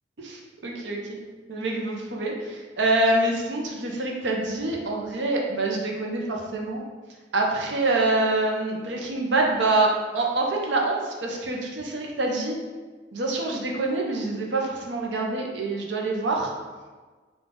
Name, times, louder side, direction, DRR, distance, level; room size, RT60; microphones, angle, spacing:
voice 1, 0.2-1.0 1.5-6.8 7.3-12.6 13.1-16.5, right 2 dB, 70° right, 0 dB, 0.7 m, -26 dB
3.8 x 2.4 x 3.6 m, 1.4 s
head